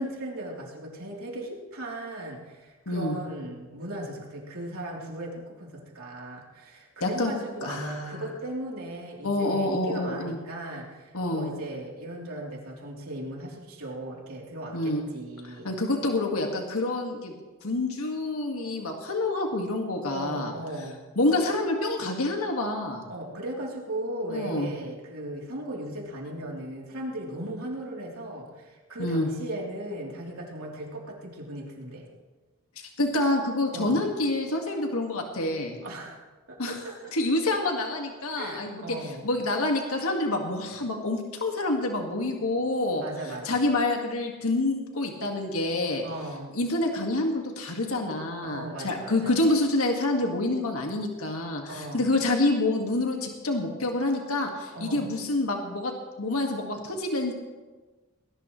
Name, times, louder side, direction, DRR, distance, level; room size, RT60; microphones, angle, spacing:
voice 1, 0.0-15.7 20.1-21.0 23.1-32.1 33.7-34.0 35.8-36.2 36.5-37.0 38.3-39.3 43.0-43.6 46.0-46.5 48.4-49.4 51.7-52.1 54.7-55.1, right 1 dB, 75° right, -2 dB, 3.5 m, -37 dB
voice 2, 2.9-3.2 7.0-7.3 7.6-8.3 9.2-10.4 11.1-11.5 14.7-15.1 15.4-17.3 17.6-20.5 21.2-23.1 24.3-24.7 29.0-29.3 32.8-35.8 36.6-36.8 37.1-39.0 39.2-43.0 43.4-46.0 46.5-55.9 56.2-57.3, left 2 dB, 80° left, 2 dB, 2.0 m, -27 dB
20.0 x 19.0 x 3.2 m, 1.3 s
head